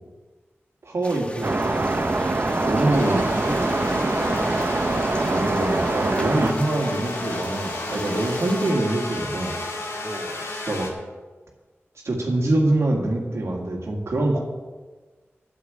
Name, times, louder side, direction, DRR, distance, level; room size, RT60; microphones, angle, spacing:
voice 1, 0.8-1.9 2.7-3.2 5.3-9.6 10.6-10.9 12.0-14.4, right 2 dB, 80° right, -1 dB, 2.0 m, -24 dB
sound 1, 1.0-8.7, left 1 dB, 25° left, 1.3 m, -39 dB
sound 2, 1.4-6.5, right 2 dB, 45° right, 0.8 m, -24 dB
voice 2, 2.5-4.5 10.0-10.4, equal, ahead, -1 dB, 2.5 m, -33 dB
sound 3, 2.9-10.9, left 2 dB, 80° left, 1.9 m, -32 dB
8.5 x 7.5 x 8.5 m, 1.3 s
cardioid pair, 55°, 5 cm